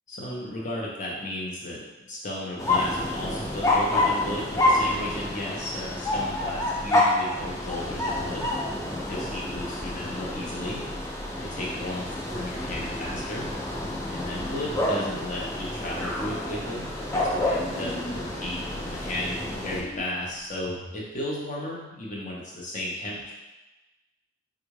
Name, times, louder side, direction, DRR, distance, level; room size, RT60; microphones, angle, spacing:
voice 1, 0.1-1.8 2.1-8.5 9.1-10.9 11.4-12.0 12.3-13.5 14.1-23.3, left 1 dB, 40° left, -4 dB, 0.7 m, -34 dB
sound 1, 2.6-19.8, left 1 dB, 15° left, 0.4 m, -28 dB
sound 2, 16.0-20.9, equal, 65° left, 1.0 m, -41 dB
3.5 x 2.4 x 3.1 m, 1.1 s
head